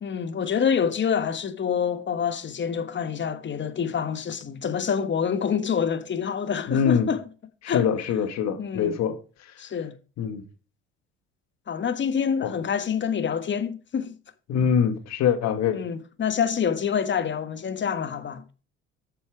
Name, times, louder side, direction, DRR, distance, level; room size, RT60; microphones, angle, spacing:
voice 1, 0.0-7.2 7.6-7.9 8.6-9.0 9.6-9.9 11.7-14.1 15.7-18.4, left 7 dB, 40° left, 1.4 m, -27 dB
voice 2, 6.7-7.1 7.6-9.5 10.2-10.4 12.4-12.5 14.5-15.8, left 7 dB, 60° left, 1.6 m, -24 dB
8.3 x 7.0 x 4.9 m
hypercardioid pair, 70°, 30 cm